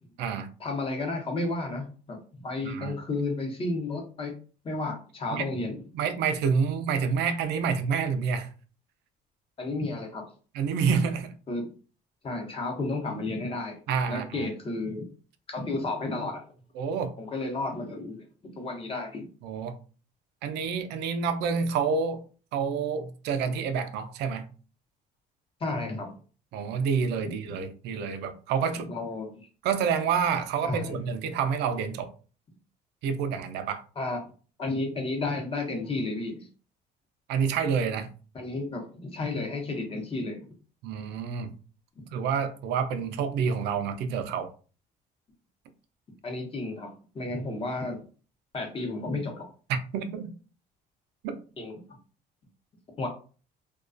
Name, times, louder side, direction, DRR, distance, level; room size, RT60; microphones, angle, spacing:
voice 1, 0.6-4.3 4.6-5.8 9.6-10.2 11.5-11.6 12.2-13.8 14.1-15.1 15.5-16.4 17.2-18.2 18.5-19.3 25.6-26.1 27.2-27.5 28.9-29.4 30.6-31.0 34.0-34.2 34.6-36.5 38.3-40.4 46.2-48.0 48.5-49.5 51.6-51.8 53.0-53.1, left 2 dB, 35° left, 0.8 m, -32 dB
voice 2, 2.6-2.9 5.3-5.5 5.9-8.5 10.5-11.3 13.9-14.5 16.8-17.1 19.4-19.8 20.4-22.2 22.5-24.5 26.5-28.9 29.6-32.1 33.0-33.8 37.3-38.1 40.8-41.5 42.1-44.5 49.9-50.3 51.2-51.4, right 6 dB, 80° right, 0.4 m, -28 dB
2.3 x 2.2 x 2.4 m
cardioid pair, 110°, 17 cm